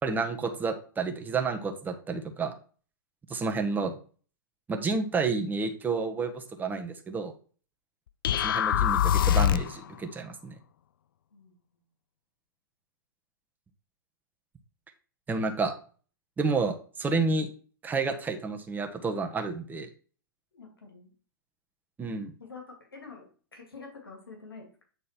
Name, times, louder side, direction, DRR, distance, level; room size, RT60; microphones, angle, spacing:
voice 1, 0.0-2.5 3.3-3.9 4.7-7.3 8.3-10.5 15.3-15.7 16.4-17.5 17.8-19.9 22.0-22.3, right 4 dB, 15° right, 4 dB, 1.2 m, -30 dB
sound 1, 8.2-9.8, left 10 dB, 70° left, 0.4 m, -23 dB
voice 2, 20.5-21.1 22.4-24.8, left 4 dB, 90° left, 2 dB, 2.5 m, -47 dB
8.7 x 4.0 x 4.5 m, 0.40 s
hypercardioid pair, 110°, 12 cm